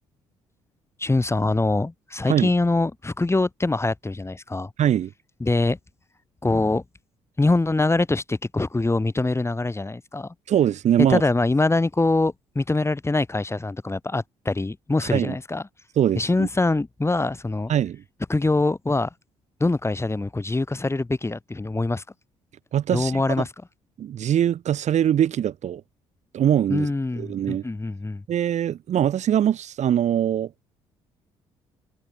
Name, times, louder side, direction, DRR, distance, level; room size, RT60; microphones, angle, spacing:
voice 1, 1.0-4.7 5.4-5.8 6.4-6.8 7.4-10.3 11.1-15.6 16.1-17.7 18.3-19.1 19.6-22.0 22.9-23.5 26.7-28.2, left 2 dB, 15° left, 4.7 m, -24 dB
voice 2, 4.8-5.1 10.5-11.2 15.1-15.3 16.0-16.5 17.7-18.0 22.7-23.2 24.0-25.8 26.3-26.9 27.2-27.6 28.3-30.6, right 10 dB, 50° right, 1.9 m, -22 dB
figure-of-eight pair, 45°, 15 cm